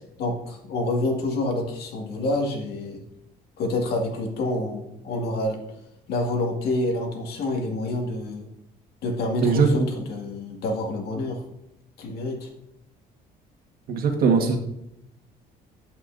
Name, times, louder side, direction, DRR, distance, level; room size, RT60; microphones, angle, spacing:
voice 1, 0.2-3.0 3.6-5.6 6.1-8.5 9.0-11.4 12.0-12.5, left 2 dB, 70° left, 1 dB, 2.0 m, -27 dB
voice 2, 9.4-9.9 13.9-14.6, right 5 dB, 60° right, 4 dB, 1.6 m, -20 dB
14.0 x 5.7 x 2.6 m, 0.81 s
cardioid pair, 110°, 17 cm